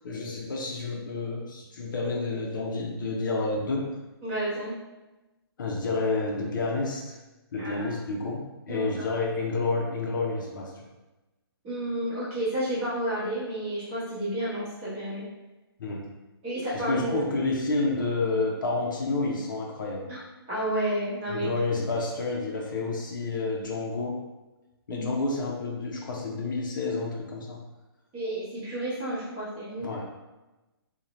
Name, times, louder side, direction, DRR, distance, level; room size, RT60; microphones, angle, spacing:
voice 1, 0.0-3.9 5.6-7.2 7.5-10.9 15.8-16.1 16.7-20.1 21.3-24.2 24.9-27.6 29.8-30.0, left 3 dB, 50° left, -1 dB, 0.5 m, -29 dB
voice 2, 4.2-4.7 7.6-8.2 8.7-9.2 11.6-15.2 16.4-17.3 20.1-20.2 20.5-21.5 24.9-25.1 28.1-29.9, right 1 dB, 20° right, -10 dB, 0.9 m, -31 dB
2.6 x 2.1 x 3.0 m, 1.1 s
hypercardioid pair, 165°, 13 cm